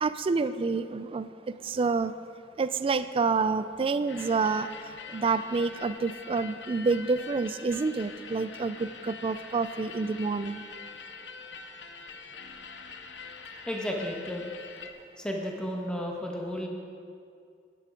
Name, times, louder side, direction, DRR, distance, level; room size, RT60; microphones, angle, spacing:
voice 1, 0.0-1.3 1.6-2.1 2.6-10.6, right 4 dB, 30° right, 12 dB, 0.3 m, -28 dB
sound 1, 4.1-14.9, left 4 dB, 90° left, 0.7 m, -44 dB
voice 2, 13.7-14.5 15.2-16.7, equal, 5° left, 0 dB, 1.3 m, -33 dB
10.5 x 10.0 x 5.0 m, 2.3 s
head